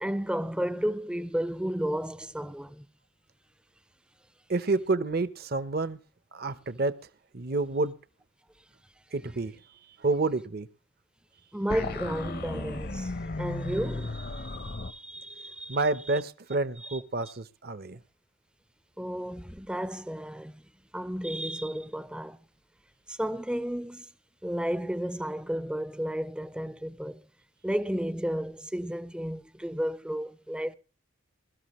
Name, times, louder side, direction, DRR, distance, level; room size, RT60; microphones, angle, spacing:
voice 1, 0.0-2.9 11.5-15.8 16.1-16.2 16.8-17.3 19.0-20.6 20.9-22.4 23.1-24.1 24.4-27.2 27.6-30.7, equal, 5° right, 0.6 m, -33 dB
voice 2, 4.5-6.0 6.3-6.9 7.3-7.9 9.1-9.6 10.0-10.7 15.7-18.0, right 3 dB, 45° right, 0.8 m, -29 dB
sound 1, 11.7-14.9, left 2 dB, 45° left, 0.8 m, -35 dB
21.5 x 13.0 x 3.1 m
head